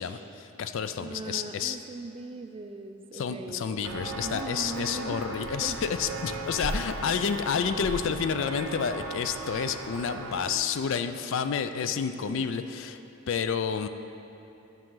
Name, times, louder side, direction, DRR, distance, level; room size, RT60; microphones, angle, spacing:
voice 1, 0.0-1.8 3.1-13.0 13.3-13.9, left 6 dB, 60° left, 10 dB, 0.3 m, -30 dB
voice 2, 1.0-5.3 5.6-5.8 12.2-12.5, right 2 dB, 25° right, 7 dB, 0.3 m, -40 dB
Walk footsteps, 3.8-10.5, right 2 dB, 70° right, 0.7 m, -37 dB
10.5 x 6.1 x 3.8 m, 2.9 s
head